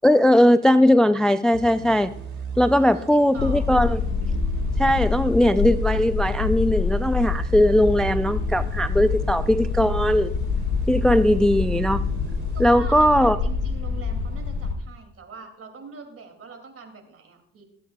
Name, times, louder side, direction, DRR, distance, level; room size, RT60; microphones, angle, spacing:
voice 1, 0.0-2.1 2.6-4.0 4.8-10.3 10.9-12.0 12.6-13.4, left 1 dB, ahead, 11 dB, 0.3 m, -19 dB
sound 1, 1.5-13.4, right 4 dB, 65° right, 3.0 m, -36 dB
voice 2, 2.7-3.7 12.5-17.6, right 4 dB, 50° right, 6 dB, 2.5 m, -42 dB
sound 2, 3.4-14.7, left 5 dB, 75° left, 1.9 m, -26 dB
24.0 x 8.3 x 2.3 m, 0.72 s
cardioid pair, 90°, 30 cm